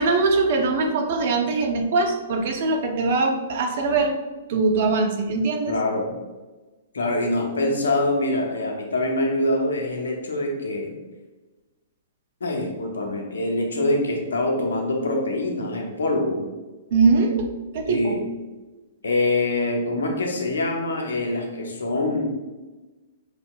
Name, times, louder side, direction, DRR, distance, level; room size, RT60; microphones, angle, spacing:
voice 1, 0.0-4.2 4.5-5.7 16.9-17.5 17.7-18.2, right 3 dB, 55° right, 4 dB, 0.5 m, -22 dB
voice 2, 5.7-6.1 6.9-10.9 12.4-16.4 17.8-18.2 19.0-22.3, left 2 dB, 80° left, 1 dB, 0.7 m, -24 dB
5.0 x 2.6 x 2.3 m, 1.2 s
hypercardioid pair, 120°, 0 cm